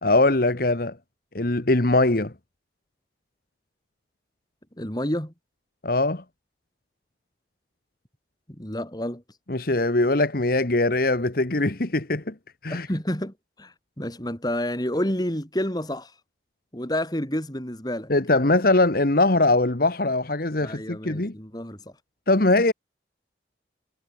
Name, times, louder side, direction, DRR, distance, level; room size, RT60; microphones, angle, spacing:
voice 1, 0.0-1.0 1.3-2.3 5.8-6.2 9.5-12.3 12.6-12.9 18.1-21.3 22.3-22.7, left 2 dB, 50° left, 1.4 m, -21 dB
voice 2, 4.8-5.3 8.5-9.2 12.7-16.1 16.7-18.1 20.6-21.8, left 1 dB, 20° left, 3.1 m, -29 dB
head